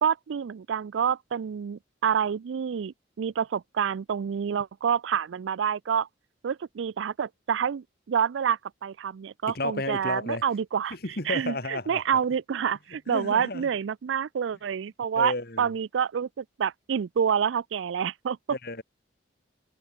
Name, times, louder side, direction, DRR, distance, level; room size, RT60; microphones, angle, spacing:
voice 1, 0.0-6.1 6.4-11.0 11.3-18.4, right 7 dB, 80° right, 0.4 m, -28 dB
voice 2, 9.5-10.4 10.9-12.0 13.1-13.7 15.1-15.7 18.5-18.8, left 2 dB, 55° left, 4.0 m, -32 dB
head